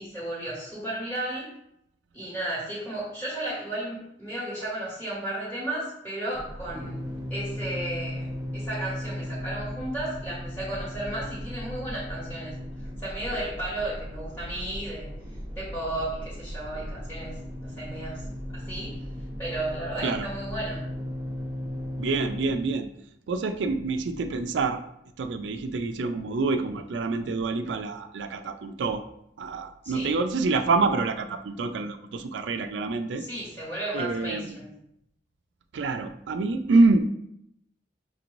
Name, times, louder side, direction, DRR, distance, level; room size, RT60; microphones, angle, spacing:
voice 1, 0.0-1.5 2.1-7.0 7.3-12.6 13.0-15.1 15.5-18.2 18.5-19.0 19.4-20.9 29.8-30.2 33.2-34.7, right 1 dB, 10° left, -7 dB, 1.4 m, -34 dB
sound 1, 6.3-22.5, equal, 20° right, 0.8 m, -36 dB
voice 2, 20.0-20.3 22.0-22.9 23.3-24.8 25.2-29.0 29.4-33.2 33.9-34.6 35.7-37.0, right 3 dB, 65° right, 8 dB, 0.4 m, -26 dB
5.8 x 3.0 x 2.6 m, 0.76 s
head